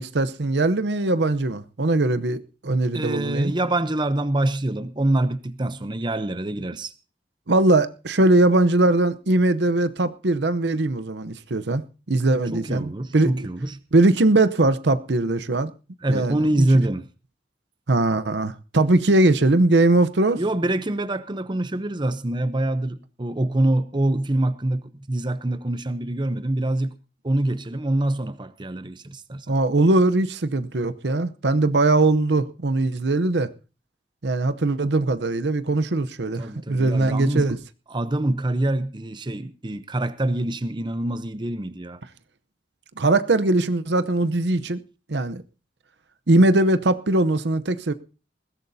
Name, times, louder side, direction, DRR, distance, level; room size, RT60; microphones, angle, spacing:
voice 1, 0.0-3.5 7.5-13.5 13.9-15.7 16.1-16.7 17.9-20.4 29.5-33.5 34.2-37.6 43.0-44.8 45.1-45.4 46.3-47.9, right 2 dB, 75° right, 0.8 m, -21 dB
voice 2, 2.9-6.9 12.5-13.8 16.0-17.1 20.4-26.9 27.2-29.5 36.4-37.6 37.9-42.0, right 1 dB, 25° right, 0.7 m, -25 dB
20.5 x 16.0 x 2.7 m
head